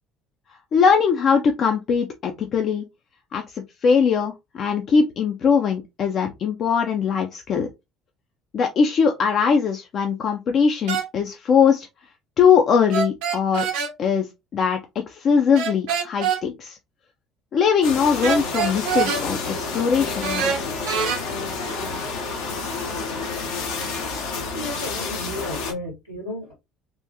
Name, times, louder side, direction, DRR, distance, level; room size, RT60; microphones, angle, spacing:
voice 1, 0.7-2.8 3.3-7.7 8.5-11.9 12.4-13.6 14.0-16.8 17.5-20.7, left 6 dB, 45° left, 0.5 m, -21 dB
sound 1, 10.9-11.1 12.9-13.9 15.5-16.4 18.2-19.2 20.2-21.2, right 7 dB, 65° right, 0.8 m, -24 dB
sound 2, 17.8-25.7, left 4 dB, 70° left, 0.8 m, -29 dB
voice 2, 24.5-26.5, left 1 dB, 90° left, 2.1 m, -33 dB
3.5 x 2.5 x 2.8 m
figure-of-eight pair, 60°, 0 cm